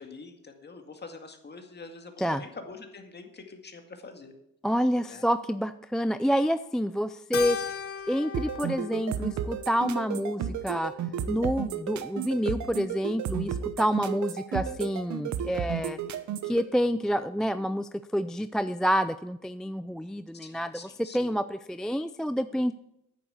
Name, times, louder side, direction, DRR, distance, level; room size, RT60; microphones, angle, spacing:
voice 1, 0.0-4.3 5.1-5.2 20.3-21.2, left 4 dB, 35° left, 5 dB, 2.0 m, -45 dB
voice 2, 4.6-7.7 8.1-10.9 11.3-16.0 16.4-22.7, equal, ahead, 12 dB, 0.3 m, -28 dB
Keyboard (musical), 7.3-11.9, left 7 dB, 50° left, 1.1 m, -39 dB
sound 1, 8.3-16.6, right 9 dB, 70° right, 0.9 m, -32 dB
9.6 x 7.1 x 8.1 m, 0.83 s
cardioid pair, 90°, 30 cm